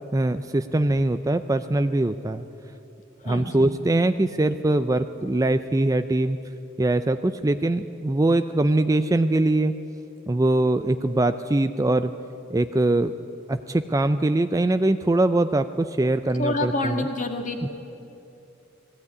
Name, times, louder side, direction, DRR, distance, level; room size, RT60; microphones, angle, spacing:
voice 1, 0.1-2.4 3.2-6.4 6.8-9.7 10.3-12.1 12.5-13.1 13.5-17.1 17.6-17.7, right 2 dB, 15° right, 10 dB, 0.4 m, -22 dB
voice 2, 3.2-3.7 16.4-17.7, left 2 dB, 40° left, 4 dB, 1.9 m, -28 dB
20.0 x 15.5 x 9.6 m, 2.8 s
head